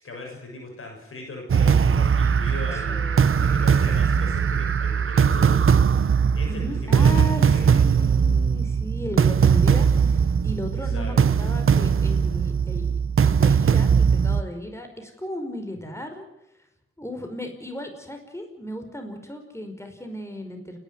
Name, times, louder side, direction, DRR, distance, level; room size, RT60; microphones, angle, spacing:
voice 1, 0.0-8.1 10.7-11.3 15.8-15.9, left 2 dB, 90° left, 1 dB, 7.0 m, -39 dB
sound 1, 1.5-14.4, right 6 dB, 80° right, 0.8 m, -20 dB
voice 2, 2.7-3.5 6.5-16.3 17.0-20.8, left 1 dB, 15° left, 5 dB, 5.2 m, -36 dB
29.5 x 12.0 x 9.7 m, 0.87 s
cardioid pair, 45°, 21 cm